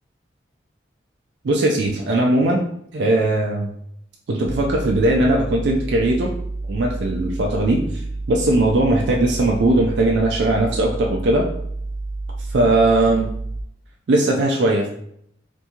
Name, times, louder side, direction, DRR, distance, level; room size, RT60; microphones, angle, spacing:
voice 1, 1.4-2.7 2.9-3.7 4.3-6.3 6.7-8.0 8.3-11.5 12.5-13.3 14.1-14.9, right 2 dB, 65° right, 0 dB, 0.4 m, -19 dB
sound 1, 4.4-13.6, right 2 dB, 60° left, 0.4 m, -29 dB
2.8 x 2.6 x 2.3 m, 0.69 s
head